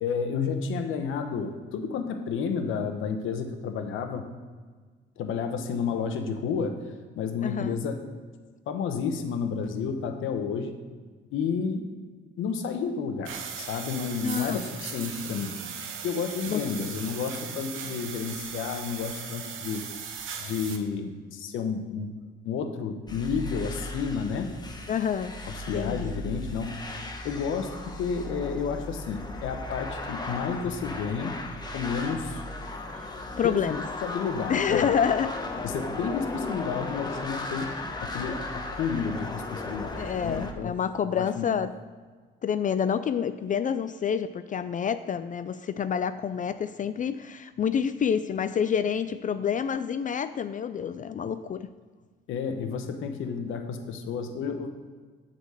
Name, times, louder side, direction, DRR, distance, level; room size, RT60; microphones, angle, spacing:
voice 1, 0.0-4.3 5.2-6.8 7.2-8.0 8.7-10.7 11.3-11.8 12.4-15.5 16.0-19.8 20.4-22.1 22.4-24.5 25.4-26.8 27.2-31.4 31.7-32.4 33.4-33.5 34.0-34.9 35.6-40.7 41.1-41.5 52.3-54.7, left 6 dB, 85° left, 6 dB, 0.9 m, -31 dB
voice 2, 7.4-7.8 14.2-14.6 16.5-16.6 24.9-25.3 25.7-26.1 32.9-33.0 33.4-33.8 34.5-35.3 40.0-41.7 42.4-51.7, left 7 dB, 40° left, 12 dB, 0.4 m, -28 dB
sound 1, 13.2-20.8, right 7 dB, 80° right, 0.9 m, -38 dB
sound 2, 23.1-40.5, left 2 dB, 20° left, 1.0 m, -36 dB
8.1 x 4.2 x 6.7 m, 1.5 s
cardioid pair, 90°, 20 cm